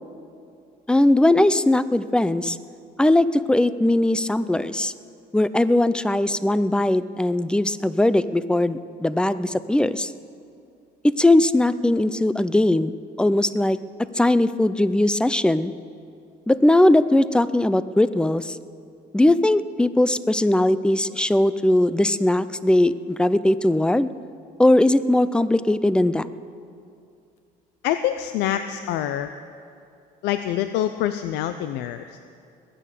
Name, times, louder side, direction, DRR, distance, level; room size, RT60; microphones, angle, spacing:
voice 1, 0.9-2.6 3.0-4.9 5.3-10.1 11.2-13.8 14.1-15.7 16.5-18.6 19.1-24.1 24.6-26.3, left 1 dB, 5° left, 15 dB, 0.4 m, -19 dB
voice 2, 27.8-29.3 30.2-32.2, left 11 dB, 90° left, 10 dB, 0.5 m, -26 dB
21.0 x 8.8 x 6.7 m, 2.5 s
cardioid pair, 110°, 17 cm